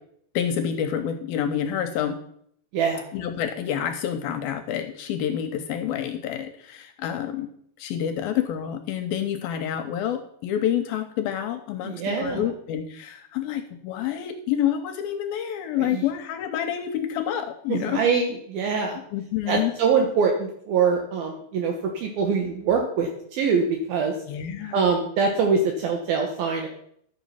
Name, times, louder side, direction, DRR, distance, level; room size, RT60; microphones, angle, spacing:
voice 1, 0.3-2.2 3.1-7.5 7.8-18.0 19.1-19.7 24.3-24.8, left 9 dB, 75° left, 7 dB, 2.4 m, -28 dB
voice 2, 2.7-3.0 11.8-12.5 15.8-16.0 17.7-19.0 19.5-24.2 24.7-26.7, right 5 dB, 70° right, 2 dB, 2.8 m, -24 dB
11.5 x 7.4 x 5.6 m, 0.67 s
omnidirectional pair, 4.8 m